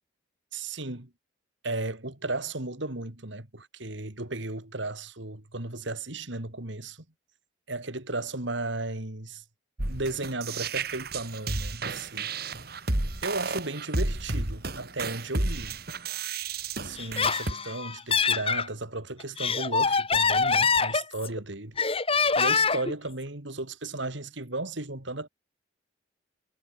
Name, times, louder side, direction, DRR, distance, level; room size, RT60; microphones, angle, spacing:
voice 1, 0.5-1.1 1.6-7.0 7.7-9.4 9.9-12.3 13.2-15.8 16.8-21.8 22.4-25.3, right 2 dB, 65° right, 2.9 m, -35 dB
sound 1, 9.8-17.5, right 3 dB, 50° right, 3.1 m, -32 dB
Laughter, 17.0-18.7 19.2-21.4 21.8-22.9, left 5 dB, 30° left, 2.5 m, -25 dB
head